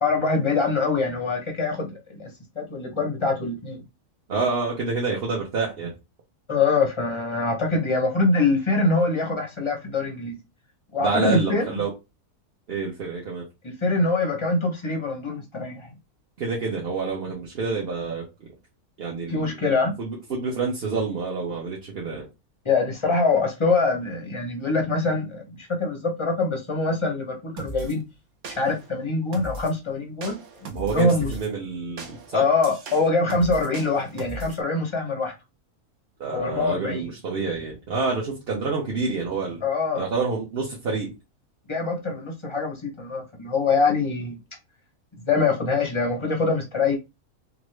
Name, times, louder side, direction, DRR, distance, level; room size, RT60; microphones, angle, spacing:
voice 1, 0.0-2.3 2.6-3.8 6.5-10.4 10.9-11.8 13.6-15.9 19.3-19.9 22.6-28.0 28.6-31.3 32.3-35.3 36.3-37.1 39.6-40.1 41.7-44.4 45.2-46.9, left 3 dB, 35° left, 0.5 m, -24 dB
voice 2, 4.3-5.9 11.0-11.9 12.7-13.4 16.4-18.2 19.0-19.6 20.0-22.2 30.7-32.4 36.2-39.6 39.9-41.1, right 4 dB, 50° right, 0.9 m, -28 dB
sound 1, 27.6-28.0 28.4-28.9 29.3-29.8 30.2-31.5 32.0-34.6, right 2 dB, 65° right, 0.5 m, -38 dB
3.0 x 2.5 x 3.1 m
omnidirectional pair, 1.6 m